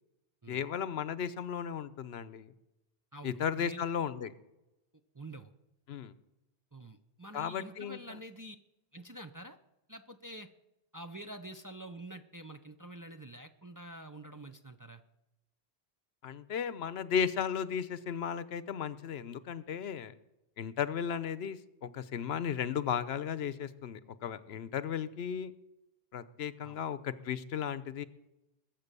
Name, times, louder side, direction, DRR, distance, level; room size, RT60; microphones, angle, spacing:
voice 1, 0.5-2.5 3.2-4.3 5.9-6.1 7.3-8.0 16.2-20.1 20.6-25.5 26.1-28.1, left 8 dB, 75° left, 15 dB, 0.9 m, -35 dB
voice 2, 3.1-3.8 5.1-5.5 6.7-8.6 8.9-9.6 9.9-10.5 10.9-15.0 26.6-26.8, right 1 dB, 25° right, 6 dB, 0.6 m, -47 dB
21.5 x 7.5 x 6.8 m, 0.94 s
omnidirectional pair, 1.1 m